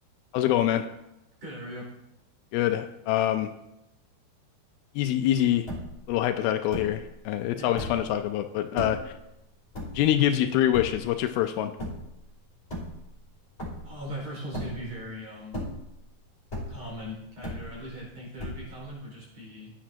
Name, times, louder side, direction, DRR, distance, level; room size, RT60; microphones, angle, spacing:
voice 1, 0.3-0.9 2.5-3.5 5.0-5.7 6.1-9.1 10.0-11.7, left 12 dB, 85° left, 7 dB, 2.5 m, -25 dB
voice 2, 1.4-1.9 7.6-7.7 13.8-15.6 16.7-19.7, equal, 45° right, -4 dB, 5.8 m, -39 dB
sound 1, 5.7-6.1 6.7-7.1 7.6-8.2 8.8-9.2 9.7-10.3 10.7-11.2 11.8-12.2 12.6-13.3 13.6-14.1 14.5-15.1 15.4-16.1 16.5-17.0 17.4-18.0 18.4-18.9, left 1 dB, 15° left, 4.5 m, -36 dB
16.0 x 9.9 x 2.8 m, 0.89 s
omnidirectional pair, 4.3 m